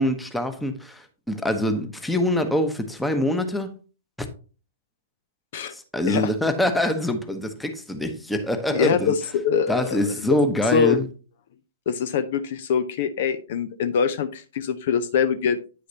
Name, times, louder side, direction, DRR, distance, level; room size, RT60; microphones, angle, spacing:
voice 1, 0.0-3.7 4.2-4.3 5.7-9.1 9.7-11.1, left 1 dB, 5° left, 1.0 m, -24 dB
voice 2, 8.7-10.1 10.7-11.0 11.9-15.6, left 7 dB, 50° left, 0.6 m, -24 dB
9.4 x 6.4 x 2.8 m
figure-of-eight pair, 110°, 0 cm